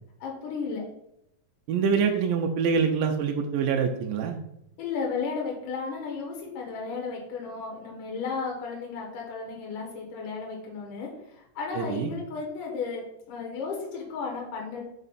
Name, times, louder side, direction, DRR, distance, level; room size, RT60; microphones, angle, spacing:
voice 1, 0.2-0.8 4.8-11.1 11.6-14.8, left 5 dB, 70° left, -1 dB, 2.7 m, -34 dB
voice 2, 1.7-4.4 11.8-12.1, right 6 dB, 85° right, 3 dB, 2.3 m, -25 dB
5.5 x 5.0 x 4.1 m, 0.79 s
omnidirectional pair, 4.1 m